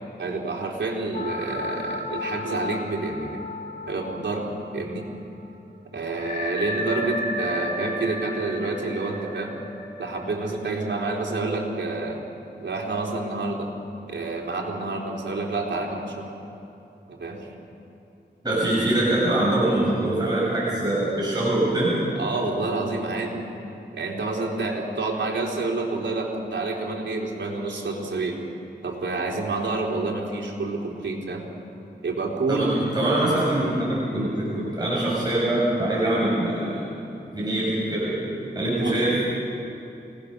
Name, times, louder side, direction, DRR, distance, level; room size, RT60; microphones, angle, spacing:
voice 1, 0.2-3.4 3.9-5.0 5.9-9.6 10.0-12.2 12.6-13.7 14.1-16.3 17.1-17.5 22.2-23.5 23.9-28.4 28.8-31.5 32.0-32.8 38.8-38.9, right 3 dB, 85° right, -1 dB, 3.6 m, -28 dB
sound 1, 1.1-5.1 5.4-5.5 6.2-10.8, left 1 dB, 45° left, 7.7 m, -33 dB
voice 2, 18.4-22.0 32.5-36.8 37.3-38.2 38.6-39.2, right 1 dB, 20° right, -8 dB, 7.4 m, -23 dB
28.0 x 18.5 x 6.7 m, 2.8 s
wide cardioid pair, 65°, 19 cm